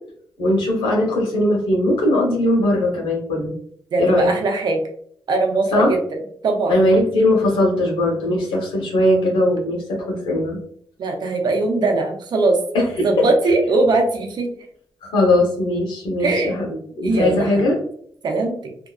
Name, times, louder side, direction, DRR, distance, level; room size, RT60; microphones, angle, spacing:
voice 1, 0.4-3.5 4.0-4.3 5.7-5.9 6.7-10.6 12.7-13.3 15.0-16.7 17.0-17.8, left 1 dB, 85° left, -2 dB, 1.0 m, -19 dB
voice 2, 3.9-4.8 5.3-6.8 11.0-12.6 13.0-14.5 16.2-16.5 17.0-17.7 18.2-18.6, right 3 dB, 65° right, 3 dB, 0.7 m, -20 dB
2.8 x 2.3 x 2.3 m, 0.62 s
cardioid pair, 65°, 8 cm